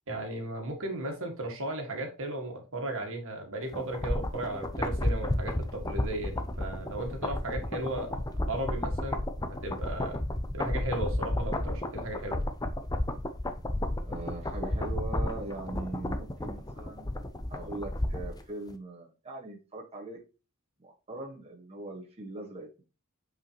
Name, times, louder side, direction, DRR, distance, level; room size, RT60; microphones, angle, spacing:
voice 1, 0.1-8.2 8.5-9.2 9.5-10.2 10.5-12.4, right 1 dB, 65° right, 3 dB, 2.1 m, -35 dB
sound 1, 3.7-18.4 18.7-18.8, left 1 dB, 15° left, 0.7 m, -32 dB
voice 2, 14.0-17.1 17.5-20.2 20.8-22.8, right 2 dB, 30° right, -1 dB, 1.6 m, -41 dB
8.5 x 4.9 x 3.1 m, 0.32 s
head